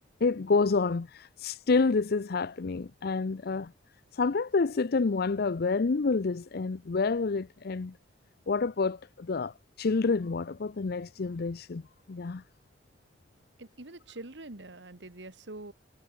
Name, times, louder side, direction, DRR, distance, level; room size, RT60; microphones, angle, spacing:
voice 1, 0.2-3.7 4.1-7.9 8.5-11.8 12.1-12.4, left 4 dB, 60° left, 0.6 m, -28 dB
voice 2, 13.6-15.7, right 2 dB, 75° right, 2.0 m, -44 dB
head